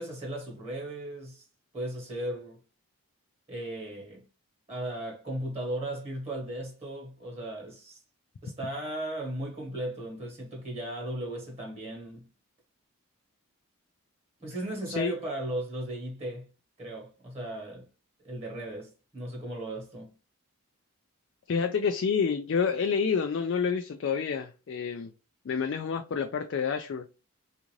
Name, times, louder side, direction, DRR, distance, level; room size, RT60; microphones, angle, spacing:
voice 1, 0.0-1.5 1.7-2.6 3.5-4.2 4.7-8.0 8.4-12.3 14.4-16.5 16.8-17.9 18.2-20.1, right 1 dB, 30° right, 1.1 m, -36 dB
voice 2, 21.5-25.1 25.5-27.1, left 6 dB, 55° left, 0.3 m, -28 dB
3.7 x 2.5 x 3.0 m
head